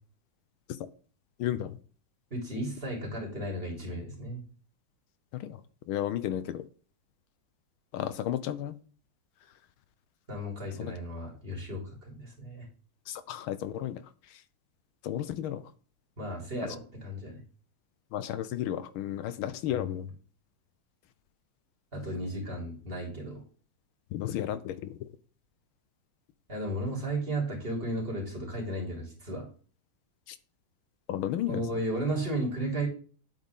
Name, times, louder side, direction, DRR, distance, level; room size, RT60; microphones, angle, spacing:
voice 1, 1.4-1.7 5.9-6.6 7.9-8.7 10.8-10.9 13.1-14.0 15.0-15.6 18.1-20.0 24.1-24.8 31.1-31.6, left 11 dB, 80° left, 1.5 m, -32 dB
voice 2, 2.3-4.4 10.3-12.6 16.2-17.4 19.7-19.9 21.9-23.4 26.5-29.5 31.5-32.9, right 1 dB, 25° right, 3.4 m, -34 dB
10.0 x 8.1 x 3.6 m
omnidirectional pair, 2.3 m